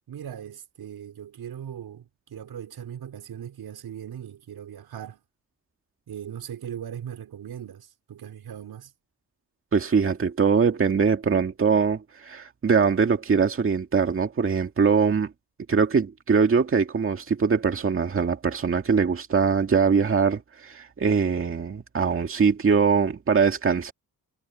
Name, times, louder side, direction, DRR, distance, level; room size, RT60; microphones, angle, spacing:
voice 1, 0.1-5.2 6.1-8.9, right 9 dB, 90° right, 5.4 m, -39 dB
voice 2, 9.7-15.3 15.7-23.9, right 5 dB, 35° right, 2.0 m, -22 dB
wide cardioid pair, 175°, 36 cm